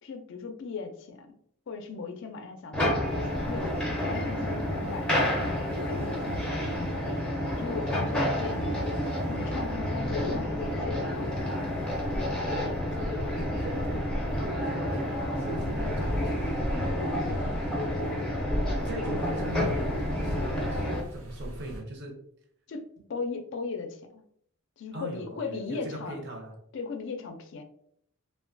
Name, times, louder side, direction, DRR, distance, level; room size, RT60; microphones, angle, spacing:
voice 1, 0.0-1.4 1.7-5.7 6.0-7.1 7.6-9.0 9.3-11.3 15.6-15.9 17.3-17.6 22.7-24.2 24.8-26.2 26.7-27.6, left 4 dB, 55° left, 5 dB, 0.4 m, -38 dB
sound 1, 2.7-21.0, left 1 dB, 5° left, 0.5 m, -30 dB
sound 2, 3.0-21.8, equal, 90° right, 0.7 m, -39 dB
voice 2, 7.9-8.4 12.2-12.5 12.9-16.8 18.8-22.2 24.9-26.6, right 1 dB, 50° right, 1 dB, 0.6 m, -40 dB
2.9 x 2.1 x 2.5 m, 0.67 s
head